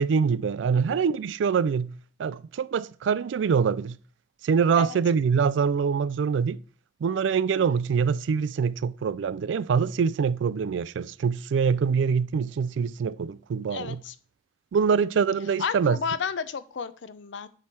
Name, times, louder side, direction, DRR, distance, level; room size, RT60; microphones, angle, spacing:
voice 1, 0.0-4.0 4.4-6.6 7.0-14.0 14.7-16.0, right 6 dB, 85° right, 0.3 m, -24 dB
voice 2, 13.7-14.1 15.6-17.5, left 6 dB, 90° left, 0.5 m, -32 dB
8.6 x 3.2 x 5.9 m
head